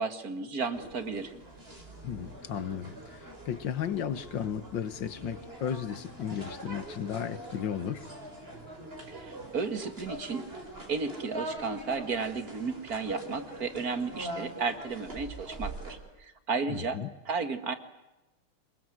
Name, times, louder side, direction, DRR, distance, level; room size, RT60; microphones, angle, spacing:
voice 1, 0.0-1.3 9.1-10.5 10.9-17.0 17.3-17.7, right 4 dB, 45° right, 2.2 m, -33 dB
sound 1, 0.7-16.0, right 1 dB, 25° right, 4.9 m, -43 dB
voice 2, 2.0-8.0 16.7-17.1, left 8 dB, 60° left, 1.9 m, -34 dB
26.5 x 22.0 x 9.2 m
omnidirectional pair, 2.3 m